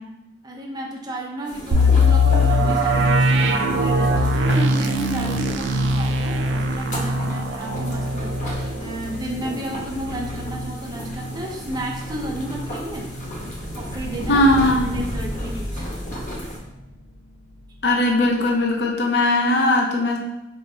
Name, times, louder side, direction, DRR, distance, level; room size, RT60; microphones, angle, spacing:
voice 1, 0.4-13.1 13.7-16.0, right 1 dB, 25° right, 0 dB, 0.5 m, -32 dB
sound 1, 1.4-16.6, equal, 45° left, 0.9 m, -35 dB
sound 2, 1.7-11.4 11.8-11.9 12.4-12.6, left 1 dB, 90° right, 0.3 m, -21 dB
sound 3, 12.2-18.6, equal, 65° right, 1.0 m, -34 dB
voice 2, 14.3-14.9 17.8-20.2, left 1 dB, 70° left, 0 dB, 0.5 m, -19 dB
4.1 x 2.7 x 2.7 m, 0.92 s
head